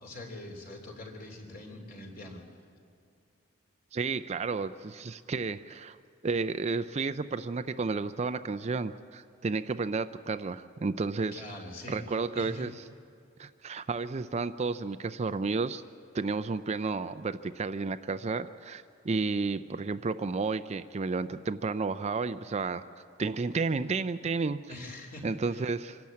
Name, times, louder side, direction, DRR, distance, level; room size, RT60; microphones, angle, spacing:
voice 1, 0.0-2.4 11.3-12.7 24.7-25.6, left 1 dB, 45° left, 2 dB, 3.3 m, -44 dB
voice 2, 3.9-6.0 6.2-11.4 11.9-12.7 13.4-15.8 16.1-22.9 23.2-24.6 25.2-26.0, right 4 dB, 30° right, 11 dB, 0.4 m, -32 dB
25.5 x 12.0 x 8.6 m, 2.4 s
head